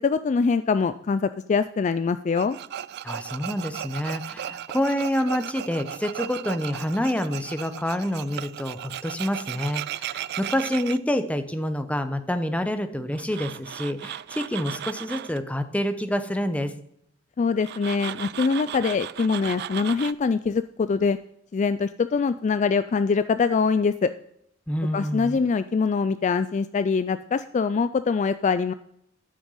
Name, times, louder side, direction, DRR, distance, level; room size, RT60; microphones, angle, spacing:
voice 1, 0.0-2.6 17.4-21.2 21.5-24.1 24.9-28.7, left 5 dB, 35° left, 13 dB, 0.3 m, -23 dB
Tools, 2.4-11.0 13.1-15.4 17.6-20.1, right 11 dB, 55° right, 0.3 m, -36 dB
voice 2, 3.0-16.7 24.7-25.4, equal, 5° left, 9 dB, 0.8 m, -27 dB
12.5 x 6.1 x 5.6 m, 0.73 s
head